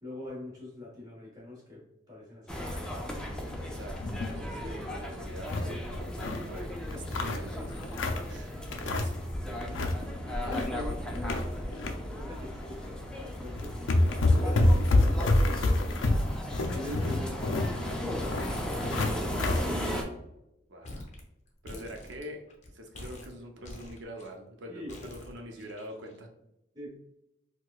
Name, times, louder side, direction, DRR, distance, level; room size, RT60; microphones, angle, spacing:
voice 1, 0.0-2.9 10.4-11.0 12.1-13.0 13.4-15.5 16.6-17.7 24.7-25.1 26.7-27.0, left 1 dB, 20° right, -4 dB, 1.3 m, -42 dB
Walking Across London Bridge, 2.5-20.0, equal, 5° left, 0.5 m, -36 dB
voice 2, 3.6-9.9 10.2-10.8 20.7-21.1 21.6-22.4 22.7-26.3, equal, 65° right, 2 dB, 0.7 m, -45 dB
sound 1, 3.9-4.4 4.8-4.9 5.2-6.5 6.9-8.3 8.7-9.3 9.6-10.0 10.3-11.9 12.3-12.5 13.2-13.3 13.6-19.6, left 2 dB, 80° left, 0.4 m, -27 dB
sound 2, 20.8-21.2 21.5-22.7 22.9-24.3 24.9-26.2, left 1 dB, 40° left, 0.7 m, -46 dB
4.6 x 2.2 x 2.3 m, 0.87 s
head